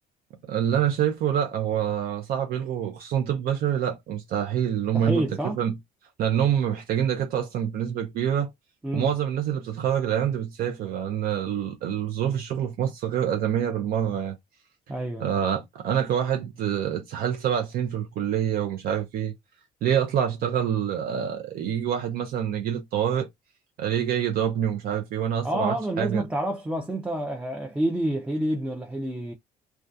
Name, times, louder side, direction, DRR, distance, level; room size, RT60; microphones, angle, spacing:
voice 1, 0.4-5.7 6.2-8.5 8.9-14.4 15.2-19.3 19.8-23.3 23.8-26.2, right 9 dB, 65° right, 0.5 m, -26 dB
voice 2, 4.9-5.6 8.8-9.1 14.9-15.4 25.4-29.3, right 1 dB, 5° right, 0.4 m, -28 dB
2.3 x 2.2 x 2.5 m
cardioid pair, 110°, 17 cm